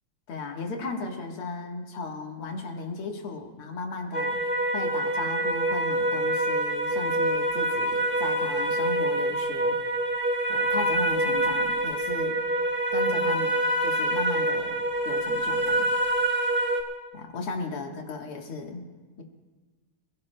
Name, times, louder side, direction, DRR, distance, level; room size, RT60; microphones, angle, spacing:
voice 1, 0.3-4.4 4.7-9.8 10.5-12.3 12.9-13.6 13.8-14.7 15.1-15.9 17.1-18.9, left 3 dB, 80° left, 2 dB, 2.3 m, -35 dB
sound 1, 4.1-16.8, right 1 dB, 10° right, 0.5 m, -26 dB
28.0 x 16.5 x 2.2 m, 1.3 s
omnidirectional pair, 2.4 m